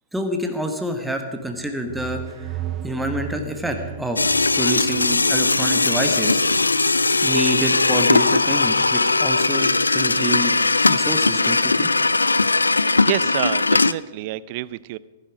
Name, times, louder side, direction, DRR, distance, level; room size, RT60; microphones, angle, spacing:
voice 1, 0.1-2.2 2.8-4.3 4.6-6.4 7.2-10.5 10.8-11.9, right 1 dB, 5° right, 4 dB, 1.4 m, -27 dB
sound 1, 1.5-5.2, right 13 dB, 30° right, 0.7 m, -34 dB
sound 2, 2.2-7.5, right 4 dB, 75° right, 4.0 m, -43 dB
sound 3, 4.2-13.9, left 3 dB, 85° left, 0.3 m, -19 dB
voice 2, 13.0-15.0, right 17 dB, 45° right, 20 dB, 0.4 m, -28 dB
15.0 x 10.5 x 5.0 m, 1.2 s
figure-of-eight pair, 105°, 0 cm